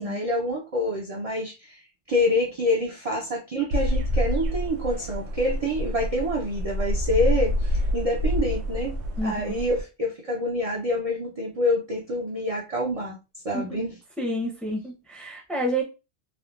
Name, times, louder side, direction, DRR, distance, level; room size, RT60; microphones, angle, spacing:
voice 1, 0.0-9.0 9.2-13.2 13.4-13.9, left 1 dB, 45° right, -3 dB, 0.5 m, -27 dB
sound 1, 3.7-9.8, left 1 dB, 75° right, 0.9 m, -27 dB
voice 2, 9.2-9.6 13.5-13.8 14.2-15.8, right 1 dB, ahead, 0 dB, 0.6 m, -29 dB
3.5 x 2.1 x 2.3 m, 0.28 s
omnidirectional pair, 1.1 m